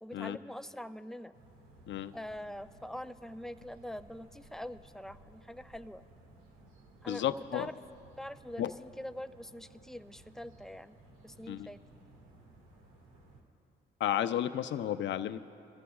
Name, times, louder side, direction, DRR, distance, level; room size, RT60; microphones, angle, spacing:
voice 1, 0.0-1.4 2.1-6.0 7.0-7.2 7.5-7.7 8.2-11.0 11.2-11.8, left 1 dB, ahead, 11 dB, 0.4 m, -44 dB
sound 1, 1.3-13.4, right 2 dB, 90° right, 1.9 m, -58 dB
voice 2, 7.1-7.7 8.6-8.7 11.5-11.7 14.0-15.4, left 11 dB, 70° left, 11 dB, 0.6 m, -32 dB
25.0 x 15.0 x 2.4 m, 2.6 s
cardioid pair, 90°, 20 cm